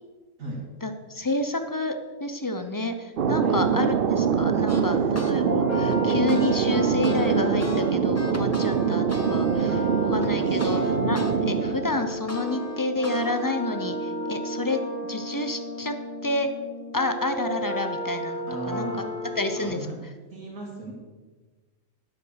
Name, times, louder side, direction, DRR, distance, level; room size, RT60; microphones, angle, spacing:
voice 1, 0.8-9.8 10.1-14.8 15.1-15.9 16.2-16.5 16.9-18.9 19.4-19.8, left 2 dB, 30° left, 8 dB, 0.4 m, -29 dB
Thunder, 3.2-12.5, right 7 dB, 55° right, 0.7 m, -24 dB
sound 1, 4.7-5.3 5.7-11.3 11.7-13.5, left 1 dB, 15° left, 0.8 m, -36 dB
voice 2, 4.9-5.2 9.6-10.7 18.5-19.2 19.5-20.0 20.3-20.9, right 2 dB, 75° right, -3 dB, 2.6 m, -38 dB
sound 2, 5.4-19.6, equal, 65° left, 3.5 m, -33 dB
9.7 x 7.9 x 6.4 m, 1.3 s
omnidirectional pair, 1.4 m